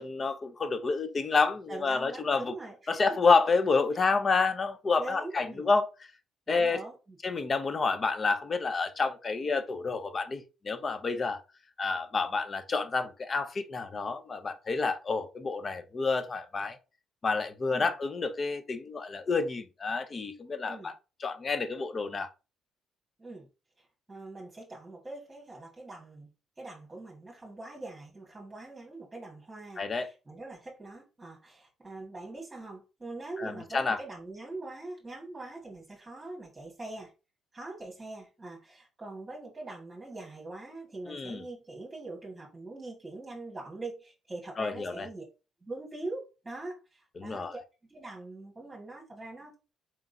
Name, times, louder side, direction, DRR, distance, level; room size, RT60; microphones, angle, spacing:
voice 1, 0.0-2.5 2.9-5.9 6.5-6.8 7.2-11.4 11.8-16.8 17.2-20.9 21.2-22.3 29.8-30.1 33.4-34.0 41.1-41.4 44.6-45.1 47.2-47.5, left 4 dB, 35° left, 0.7 m, -29 dB
voice 2, 1.7-3.0 5.0-5.7 6.5-7.2 17.7-17.9 20.7-20.9 23.2-23.5 23.8-26.3 26.6-37.1 37.5-45.2 45.6-47.6 47.9-49.6, right 2 dB, 15° right, 1.8 m, -43 dB
4.4 x 3.6 x 2.7 m
cardioid pair, 90°, 0 cm